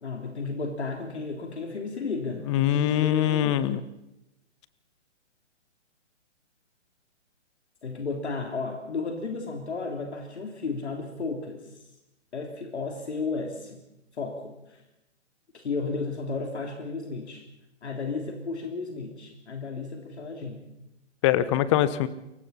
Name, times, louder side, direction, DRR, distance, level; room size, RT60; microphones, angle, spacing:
voice 1, 0.0-3.7 7.8-11.6 12.3-13.8 14.2-14.8 15.5-17.4 17.8-20.6, left 4 dB, 65° left, 3 dB, 3.4 m, -33 dB
voice 2, 2.5-3.8 21.2-22.1, left 12 dB, 25° left, 16 dB, 1.0 m, -23 dB
30.0 x 23.0 x 4.2 m, 0.92 s
figure-of-eight pair, 135°, 36 cm